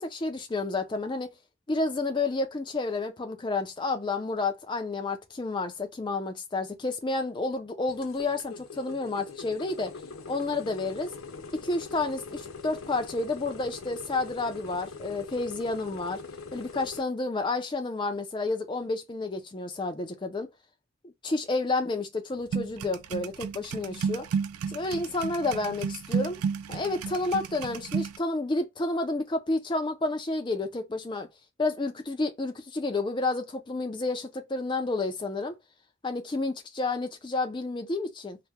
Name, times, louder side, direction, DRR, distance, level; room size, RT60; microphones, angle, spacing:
voice 1, 0.0-1.3 1.7-9.9 10.3-11.1 11.6-16.2 16.5-20.5 21.0-24.3 24.7-26.4 26.7-31.3 31.6-35.6 36.0-38.4, left 3 dB, 20° left, 0.4 m, -30 dB
sound 1, 7.9-17.0, left 4 dB, 65° left, 0.6 m, -42 dB
sound 2, 22.5-28.2, right 6 dB, 80° right, 0.3 m, -32 dB
2.8 x 2.1 x 3.4 m
head